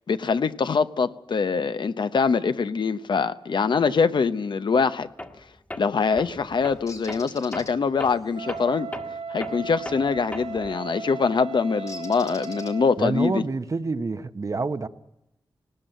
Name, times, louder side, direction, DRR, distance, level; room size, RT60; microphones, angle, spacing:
voice 1, 0.1-5.1 5.8-8.9 9.3-13.4, left 5 dB, 70° left, 0.8 m, -24 dB
Tools, 5.2-5.4 5.7-10.8, left 1 dB, 20° left, 1.5 m, -38 dB
Bird, 6.9-7.7 10.3-10.6 11.9-13.1, left 3 dB, 40° left, 1.9 m, -43 dB
Wind instrument woodwind instrument, 8.3-13.0, right 5 dB, 80° right, 1.2 m, -36 dB
voice 2, 13.0-14.9, right 3 dB, 40° right, 0.9 m, -27 dB
19.0 x 18.5 x 9.1 m
wide cardioid pair, 130°, 8 cm